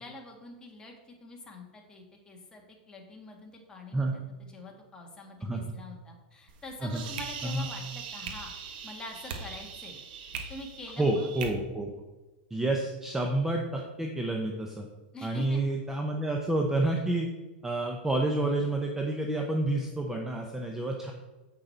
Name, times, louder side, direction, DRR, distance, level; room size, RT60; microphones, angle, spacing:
voice 1, 0.0-8.5 8.8-10.0 10.5-11.3 15.1-15.6, left 2 dB, 15° left, 1 dB, 1.6 m, -45 dB
sound 1, 6.5-11.5, right 6 dB, 60° right, 1.4 m, -41 dB
voice 2, 11.0-11.9 12.5-14.9 15.2-17.3 17.6-21.1, right 2 dB, 5° right, 1 dB, 0.7 m, -29 dB
8.1 x 6.5 x 4.3 m, 1.1 s
supercardioid pair, 140°, 6 cm